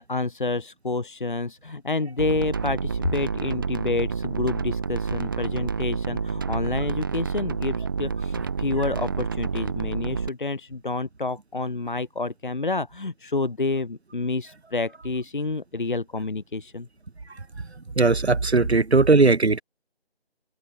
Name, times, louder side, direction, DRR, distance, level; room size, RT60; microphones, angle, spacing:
voice 1, 0.0-16.9, left 3 dB, 50° left, 1.7 m, -29 dB
sound 1, 2.2-10.3, right 5 dB, 20° right, 3.0 m, -29 dB
voice 2, 18.0-19.6, right 3 dB, 85° right, 1.3 m, -18 dB
open air
figure-of-eight pair, 170°, 31 cm